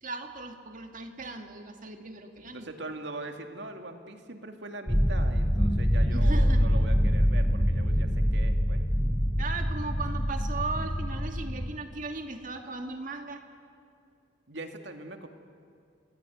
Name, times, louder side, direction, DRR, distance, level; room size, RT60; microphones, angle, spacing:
voice 1, 0.0-2.7 6.1-6.7 9.4-13.4, right 3 dB, 45° right, 5 dB, 2.3 m, -37 dB
voice 2, 2.4-8.8 14.5-15.3, right 2 dB, 70° right, 5 dB, 2.4 m, -41 dB
sound 1, 4.9-11.7, equal, 5° left, 1.9 m, -25 dB
29.0 x 20.0 x 9.4 m, 2.3 s
head